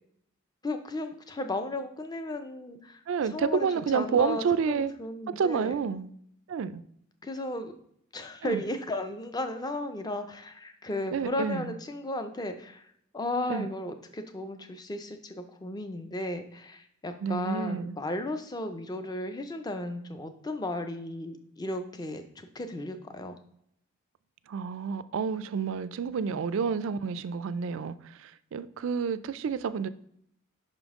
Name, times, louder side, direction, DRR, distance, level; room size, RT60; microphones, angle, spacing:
voice 1, 0.6-5.8 7.2-7.7 8.1-23.3, left 1 dB, 20° left, 7 dB, 0.4 m, -35 dB
voice 2, 3.1-4.9 5.3-6.1 6.5-6.8 8.4-8.6 11.1-11.7 13.5-13.7 17.2-18.0 24.5-29.9, right 6 dB, 60° right, 14 dB, 0.3 m, -29 dB
5.5 x 5.2 x 3.6 m, 0.70 s
head